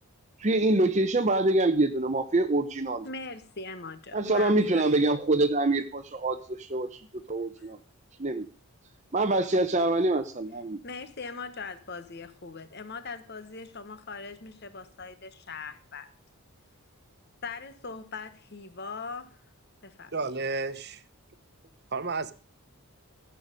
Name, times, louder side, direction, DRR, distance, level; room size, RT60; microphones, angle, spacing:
voice 1, 0.4-3.1 4.1-7.8 8.2-8.5 9.1-10.8, right 2 dB, 30° right, 0.8 m, -25 dB
voice 2, 3.0-4.8 7.6-7.7 10.8-16.1 17.4-19.4 19.8-20.1, left 4 dB, 50° left, 1.3 m, -40 dB
voice 3, 20.1-21.0 21.9-22.3, right 3 dB, 50° right, 1.1 m, -31 dB
15.0 x 7.9 x 5.1 m
head